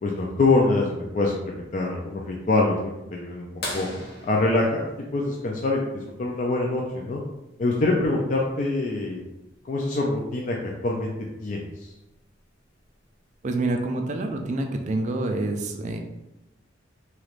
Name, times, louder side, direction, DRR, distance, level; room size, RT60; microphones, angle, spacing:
voice 1, 0.0-3.5 3.7-3.9 4.2-7.2 7.6-9.2 9.6-11.1 11.4-11.9, left 2 dB, 40° left, -2 dB, 0.3 m, -25 dB
sound 1, 3.6-6.1 8.0-8.1 10.3-10.4 12.1-12.4 13.2-13.3, left 1 dB, 55° left, 0.8 m, -37 dB
voice 2, 13.4-16.0, right 2 dB, 40° right, 4 dB, 0.3 m, -27 dB
3.2 x 3.0 x 2.4 m, 0.93 s
head